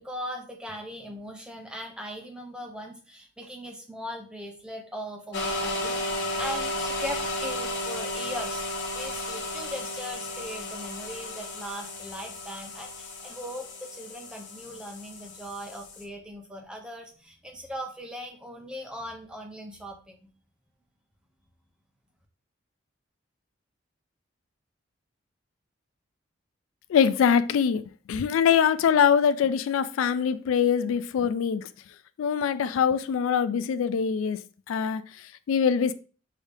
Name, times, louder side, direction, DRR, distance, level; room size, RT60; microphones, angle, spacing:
voice 1, 0.0-20.3, equal, 5° right, 0.6 m, -39 dB
sound 1, 5.3-16.0, left 1 dB, 55° left, 0.7 m, -34 dB
voice 2, 26.9-27.8 28.1-31.7 32.2-35.9, left 7 dB, 80° left, 0.3 m, -23 dB
4.7 x 2.7 x 3.3 m
head